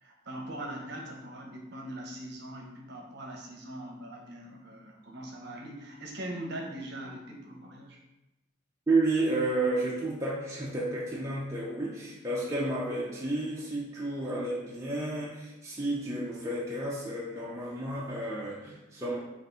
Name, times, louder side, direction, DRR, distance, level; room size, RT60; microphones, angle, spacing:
voice 1, 0.0-8.0, right 1 dB, 50° right, 0 dB, 0.7 m, -41 dB
voice 2, 8.9-19.2, right 2 dB, 15° right, -5 dB, 0.4 m, -31 dB
3.4 x 2.5 x 3.8 m, 0.96 s
head